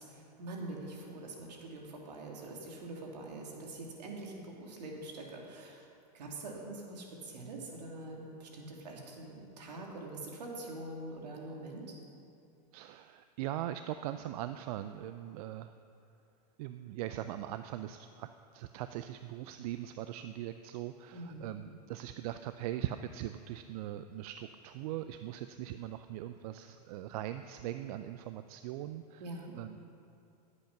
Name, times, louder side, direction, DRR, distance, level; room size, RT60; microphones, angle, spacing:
voice 1, 0.0-5.8 6.1-12.0 21.1-21.5 29.2-29.5, right 2 dB, 80° right, -1 dB, 2.7 m, -44 dB
voice 2, 12.7-15.8 16.6-18.3 18.5-29.2 29.6-29.8, right 12 dB, 65° right, 10 dB, 0.5 m, -40 dB
15.5 x 8.3 x 5.9 m, 2.6 s
hypercardioid pair, 100°, 21 cm